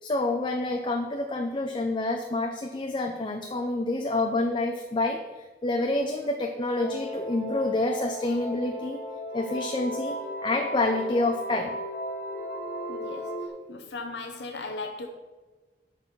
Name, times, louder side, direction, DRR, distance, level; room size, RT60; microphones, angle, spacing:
voice 1, 0.0-9.0 9.3-11.8, left 2 dB, 30° left, 4 dB, 0.5 m, -28 dB
sound 1, 6.8-13.5, equal, 55° left, 1.1 m, -35 dB
voice 2, 12.9-13.4 13.7-15.1, left 3 dB, 85° left, 3 dB, 0.8 m, -37 dB
10.5 x 4.2 x 6.0 m, 1.3 s
head